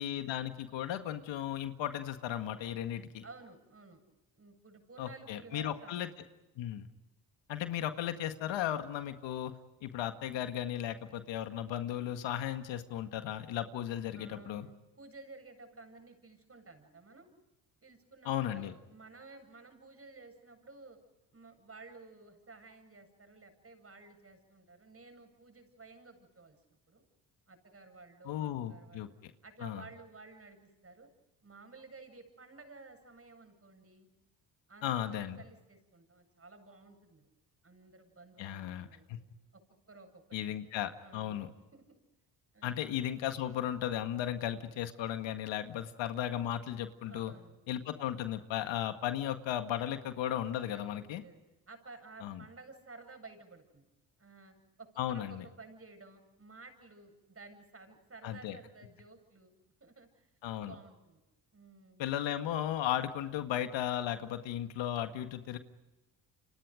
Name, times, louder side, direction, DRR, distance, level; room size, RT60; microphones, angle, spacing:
voice 1, 0.0-3.2 5.0-6.1 6.6-6.9 7.5-9.5 9.8-14.7 18.3-18.7 28.2-29.3 29.6-29.8 34.8-35.4 38.4-39.2 40.3-41.5 42.6-47.3 47.7-51.2 52.2-52.4 55.0-55.5 58.2-58.6 60.4-60.8 62.0-65.6, left 11 dB, 75° left, 8 dB, 1.9 m, -35 dB
voice 2, 3.2-4.0 4.3-6.1 14.1-17.3 17.8-21.0 21.3-27.0 27.5-29.1 29.4-31.1 31.4-34.1 34.7-37.3 37.6-39.1 39.5-39.6 39.9-40.6 41.0-41.4 41.7-42.0 42.5-42.8 47.1-47.6 50.7-51.4 51.7-53.9 54.2-59.5 59.8-60.3 60.6-61.2 61.5-62.1, right 3 dB, 30° right, 6 dB, 8.0 m, -54 dB
30.0 x 26.5 x 5.1 m, 1.0 s
supercardioid pair, 65°, 45 cm